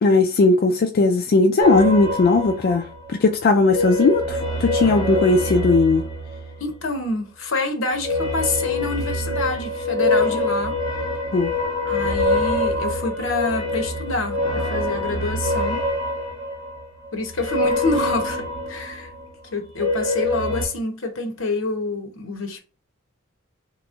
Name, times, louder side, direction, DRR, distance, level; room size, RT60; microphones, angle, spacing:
voice 1, 0.0-6.0 11.3-11.5, left 3 dB, 50° left, 0.3 m, -18 dB
sound 1, 1.6-3.2 3.5-7.1 7.9-19.3 19.6-20.6, left 1 dB, 20° left, 1.5 m, -25 dB
voice 2, 6.6-10.8 11.9-15.8 17.1-19.1 19.5-22.6, left 3 dB, 70° left, 0.9 m, -27 dB
3.4 x 3.0 x 2.5 m
head